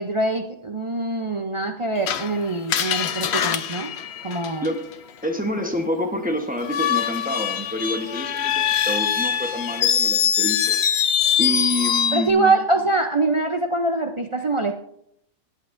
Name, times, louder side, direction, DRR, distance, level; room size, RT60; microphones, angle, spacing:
voice 1, 0.0-3.9 4.2-4.7 12.1-14.7, right 2 dB, 55° right, 4 dB, 0.3 m, -23 dB
Screech, 2.1-4.9 6.6-12.3, left 9 dB, 60° left, 0.8 m, -23 dB
voice 2, 5.2-10.8 11.4-12.5, equal, 5° right, 3 dB, 0.8 m, -27 dB
18.0 x 8.2 x 2.6 m, 0.72 s
omnidirectional pair, 1.4 m